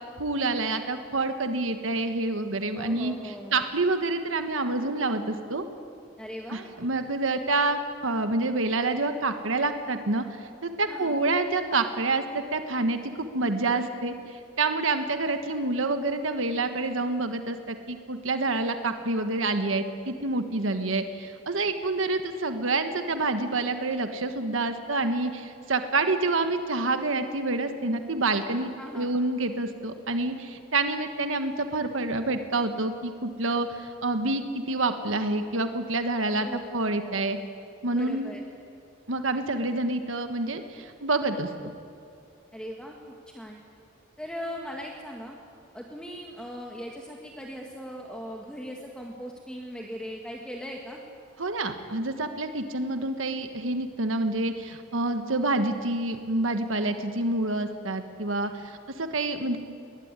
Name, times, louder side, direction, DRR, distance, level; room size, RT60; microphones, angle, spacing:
voice 1, 0.2-5.6 6.5-10.2 10.6-37.4 37.8-38.3 39.1-41.7 51.4-59.6, right 2 dB, 85° right, 7 dB, 1.5 m, -28 dB
voice 2, 2.7-3.6 6.2-6.7 10.9-11.2 28.8-29.1 36.4-36.6 37.0-37.2 37.9-38.4 42.5-43.6 44.2-45.4 45.7-51.0, equal, 5° left, 0 dB, 1.7 m, -39 dB
22.0 x 19.5 x 9.8 m, 2.6 s
head